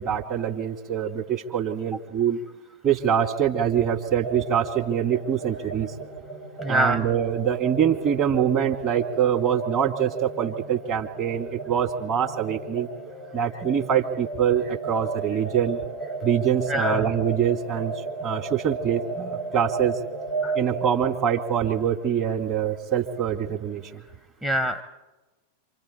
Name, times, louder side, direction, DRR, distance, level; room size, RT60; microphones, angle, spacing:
voice 1, 0.0-2.4 2.8-5.9 6.7-12.9 13.3-15.8 16.2-17.9 18.2-20.0 20.6-24.0, right 8 dB, 35° right, 2 dB, 2.0 m, -24 dB
sound 1, 4.2-20.9, right 3 dB, 75° right, 5.7 m, -35 dB
voice 2, 6.6-7.0 16.7-17.0 20.4-20.6 24.4-24.8, right 1 dB, 5° right, 10 dB, 0.7 m, -25 dB
27.0 x 25.5 x 4.3 m, 1.2 s
figure-of-eight pair, 90°, 0 cm